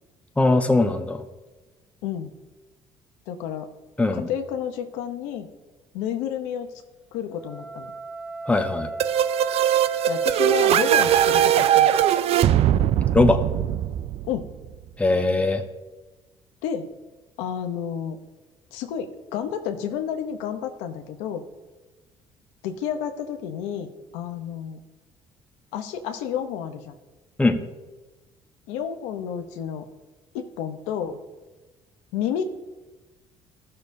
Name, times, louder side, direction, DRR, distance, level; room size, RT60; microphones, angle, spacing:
voice 1, 0.4-1.2 4.0-4.3 8.5-8.9 13.1-13.4 15.0-15.6 27.4-27.6, left 2 dB, 10° left, 5 dB, 1.0 m, -20 dB
voice 2, 3.3-3.7 4.1-5.5 5.9-6.7 7.1-7.9 10.1-11.9 14.2-14.5 16.6-16.9 17.4-18.2 18.7-21.4 22.6-24.8 25.7-27.0 28.7-29.8 30.3-31.2 32.1-32.4, left 8 dB, 90° left, 6 dB, 0.8 m, -30 dB
Wind instrument woodwind instrument, 7.3-12.0, right 2 dB, 5° right, 1.3 m, -35 dB
sound 1, 9.0-14.7, right 11 dB, 60° right, 0.4 m, -20 dB
14.5 x 6.7 x 2.7 m, 1.2 s
supercardioid pair, 85°, 11 cm